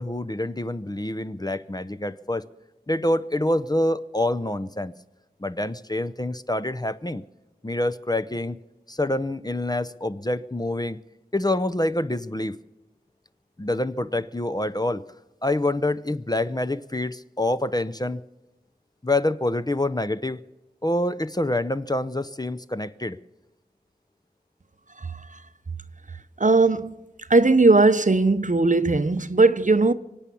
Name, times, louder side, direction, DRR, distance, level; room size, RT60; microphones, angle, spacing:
voice 1, 0.0-2.4 2.9-4.9 5.4-7.2 7.6-8.6 8.9-11.0 11.3-12.6 13.6-15.0 15.4-18.2 19.0-20.4 20.8-23.2, left 1 dB, 20° left, 0.6 m, -26 dB
voice 2, 26.4-26.9 27.3-29.9, right 3 dB, 45° right, 0.7 m, -18 dB
24.0 x 8.5 x 7.0 m
wide cardioid pair, 40°, 17 cm